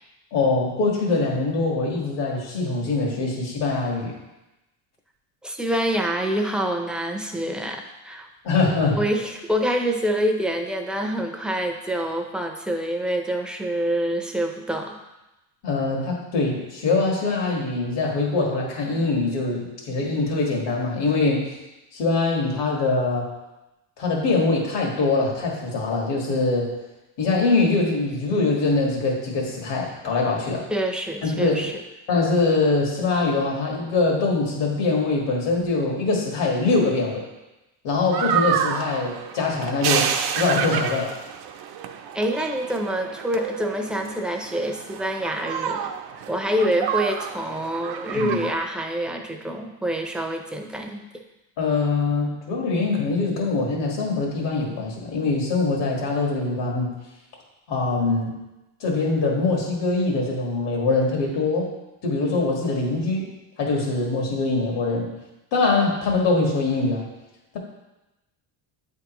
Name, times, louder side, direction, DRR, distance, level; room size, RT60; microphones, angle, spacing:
voice 1, 0.3-4.1 8.4-9.0 15.6-21.5 21.9-23.3 24.0-26.7 27.2-30.7 31.2-31.7 32.1-37.3 37.8-41.2 48.1-48.4 51.6-56.9 57.7-58.3 58.8-61.7 62.0-63.3 63.6-65.1 65.5-67.1, left 3 dB, 70° left, -1 dB, 1.8 m, -23 dB
voice 2, 5.4-8.3 8.9-15.0 30.7-31.7 42.1-45.9 46.3-51.0, equal, ahead, 2 dB, 0.5 m, -26 dB
sound 1, 38.1-48.5, right 8 dB, 55° right, 0.6 m, -29 dB
8.6 x 3.6 x 3.0 m, 1.0 s
supercardioid pair, 100°, 44 cm